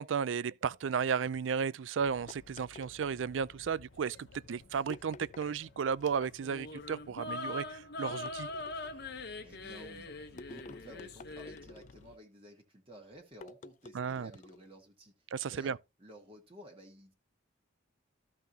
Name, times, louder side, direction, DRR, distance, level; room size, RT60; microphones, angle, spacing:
voice 1, 0.0-8.5 13.9-14.3 15.3-15.8, right 6 dB, 80° right, 0.4 m, -34 dB
sound 1, 2.0-12.2, left 3 dB, 85° left, 0.9 m, -59 dB
sound 2, 2.3-3.7 4.9-5.6 6.0-6.7 8.1-9.0 10.4-12.2 13.4-14.7, left 3 dB, 40° left, 0.4 m, -51 dB
sound 3, 6.4-11.7, left 2 dB, 60° left, 1.1 m, -42 dB
voice 2, 9.4-15.1 15.5-17.1, equal, 30° right, 1.6 m, -54 dB
13.5 x 5.7 x 2.8 m
head